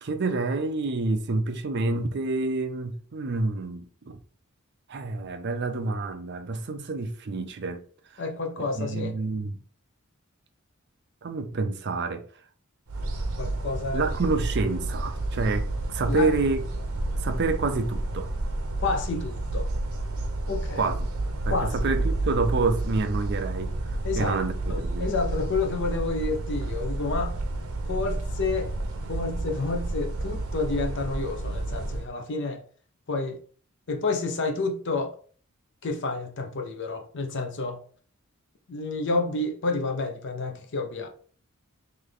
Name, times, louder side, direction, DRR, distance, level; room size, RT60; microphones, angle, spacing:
voice 1, 0.0-4.2 4.9-7.8 8.1-8.2 8.7-9.6 11.2-12.2 13.9-16.6 17.2-18.3 20.7-21.1 21.5-25.1, right 3 dB, 50° right, 0.5 m, -28 dB
voice 2, 8.2-9.1 13.4-14.1 16.1-16.3 18.8-19.7 20.5-20.9 21.4-21.9 24.0-24.4 24.7-27.4 27.9-28.7 29.1-32.6 33.1-33.4 33.9-35.2 35.8-37.8 38.7-41.1, left 3 dB, 55° left, 0.6 m, -29 dB
sound 1, 12.9-32.1, right 2 dB, 80° right, 0.8 m, -30 dB
3.3 x 3.2 x 3.8 m
head